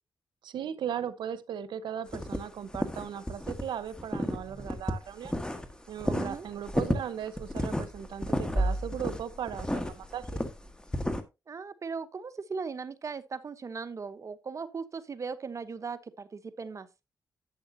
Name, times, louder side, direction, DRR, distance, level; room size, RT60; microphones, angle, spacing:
voice 1, 0.4-5.4 5.9-10.4, right 9 dB, 85° right, 1.0 m, -37 dB
sound 1, 2.1-3.6 3.9-5.7 6.0-11.2, equal, 10° left, 1.5 m, -31 dB
voice 2, 6.1-6.5 11.5-16.9, right 5 dB, 45° right, 0.9 m, -38 dB
11.5 x 8.1 x 2.7 m
cardioid pair, 90°, 8 cm